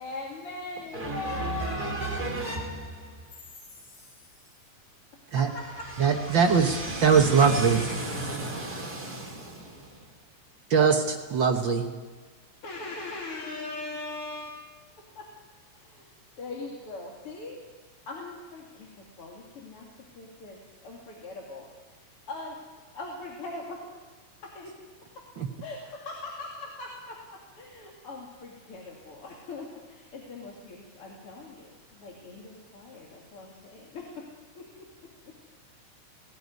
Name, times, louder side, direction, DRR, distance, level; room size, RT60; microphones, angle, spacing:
voice 1, 0.0-2.3 3.6-4.4 5.4-6.1 12.6-15.3 15.7-16.0 16.4-17.6 18.1-21.7 22.3-22.6 22.9-23.8 24.4-24.8 25.6-34.3 34.5-34.9 35.2-35.3, left 3 dB, 45° left, -2 dB, 3.2 m, -40 dB
voice 2, 0.9-3.1 6.3-9.9, right 2 dB, 30° right, 0 dB, 4.7 m, -34 dB
voice 3, 6.0-7.8 10.7-11.9 25.4-25.5, right 6 dB, 55° right, 4 dB, 1.5 m, -22 dB
18.5 x 17.5 x 9.5 m, 1.4 s
omnidirectional pair, 3.5 m